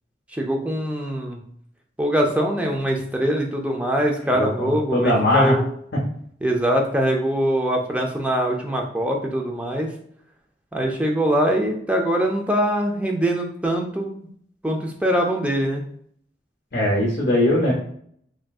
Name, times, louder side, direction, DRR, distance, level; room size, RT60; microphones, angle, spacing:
voice 1, 0.3-1.4 2.0-5.6 6.4-9.9 10.7-14.1 14.6-15.8, right 1 dB, 5° right, 1 dB, 0.3 m, -23 dB
voice 2, 4.3-5.6 16.7-17.7, left 1 dB, 55° left, -4 dB, 0.6 m, -20 dB
3.5 x 2.6 x 2.3 m, 0.64 s
head